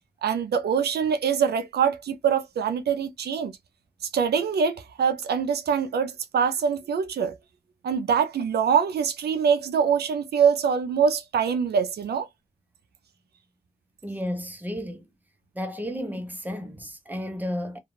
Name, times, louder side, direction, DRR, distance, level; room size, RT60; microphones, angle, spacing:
voice 1, 0.2-3.5 4.1-7.4 7.8-12.3, right 7 dB, 80° right, 0.4 m, -24 dB
voice 2, 14.0-15.0 15.5-17.8, equal, 10° right, 0.8 m, -32 dB
2.4 x 2.3 x 3.0 m
cardioid pair, 55°, 16 cm